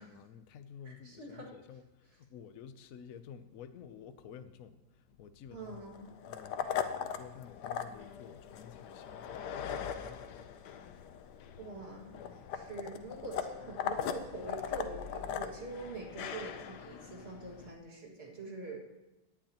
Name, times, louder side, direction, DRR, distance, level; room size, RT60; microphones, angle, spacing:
voice 1, 0.0-6.0 6.2-10.4, left 8 dB, 65° left, 1.0 m, -52 dB
voice 2, 0.9-1.5 5.5-6.1 11.6-12.1 12.5-18.8, right 2 dB, 40° right, 2.2 m, -44 dB
sound 1, 5.6-17.7, left 8 dB, 90° left, 1.3 m, -40 dB
17.0 x 9.8 x 2.9 m
omnidirectional pair, 1.7 m